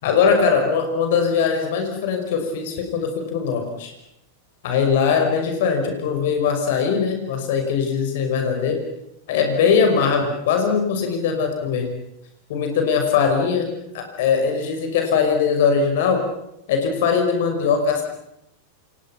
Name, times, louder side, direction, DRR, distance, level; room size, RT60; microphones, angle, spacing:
voice 1, 0.0-3.9 4.6-8.8 9.3-12.0 12.5-16.2 16.7-18.0, left 6 dB, 55° left, 4 dB, 5.7 m, -21 dB
29.5 x 28.0 x 6.0 m, 0.81 s
figure-of-eight pair, 90°, 0 cm